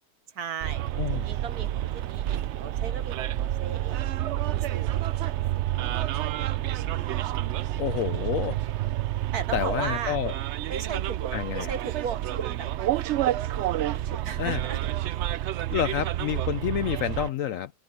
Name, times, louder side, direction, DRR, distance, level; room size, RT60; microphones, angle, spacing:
voice 1, 0.3-0.8 1.1-5.1 5.5-5.9 9.3-10.2 10.7-11.2 11.5-13.1 14.2-14.8, right 7 dB, 65° right, 1.7 m, -37 dB
Bus, 0.6-17.3, right 13 dB, 85° right, 0.6 m, -29 dB
voice 2, 7.8-8.6 9.5-10.3 11.3-11.7 14.4-14.6 15.7-17.7, left 10 dB, 70° left, 0.8 m, -28 dB
sound 1, 8.2-16.5, right 6 dB, 45° right, 2.0 m, -46 dB
omnidirectional pair, 1.8 m